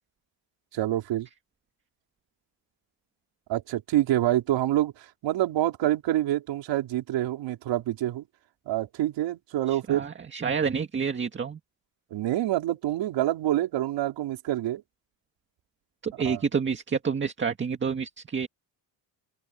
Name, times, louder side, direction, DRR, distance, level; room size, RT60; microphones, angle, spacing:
voice 1, 0.7-1.3 3.5-4.9 5.2-8.3 8.7-10.1 12.1-14.8 16.2-16.4, right 14 dB, 90° right, 4.5 m, -26 dB
voice 2, 9.7-11.6 16.0-18.5, right 6 dB, 25° right, 2.0 m, -29 dB
open air
cardioid pair, 160°, 43 cm